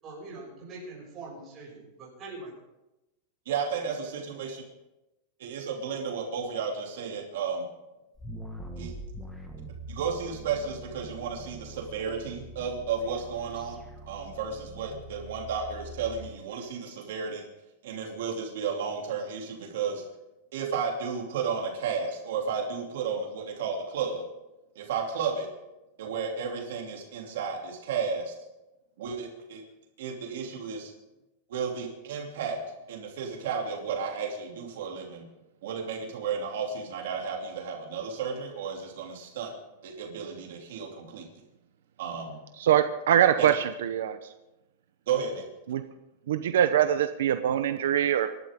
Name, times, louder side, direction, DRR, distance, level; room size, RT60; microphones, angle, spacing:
voice 1, 0.0-2.5, right 2 dB, 20° right, -4 dB, 6.8 m, -43 dB
voice 2, 3.5-4.6 5.4-7.7 8.8-8.9 9.9-13.8 14.1-17.4 17.8-20.0 20.5-24.2 24.8-25.5 26.0-28.3 29.0-29.6 30.0-30.9 31.5-32.6 32.9-35.2 35.6-39.5 39.8-41.2 42.0-42.4 43.4-43.5 45.1-45.4, right 6 dB, 65° right, 0 dB, 2.9 m, -33 dB
sound 1, 8.1-16.3, equal, ahead, 1.7 m, -43 dB
voice 3, 42.6-44.2 45.7-45.8 46.3-48.3, right 10 dB, 85° right, 8 dB, 0.9 m, -23 dB
25.0 x 12.0 x 3.7 m, 0.97 s
supercardioid pair, 175°, 0 cm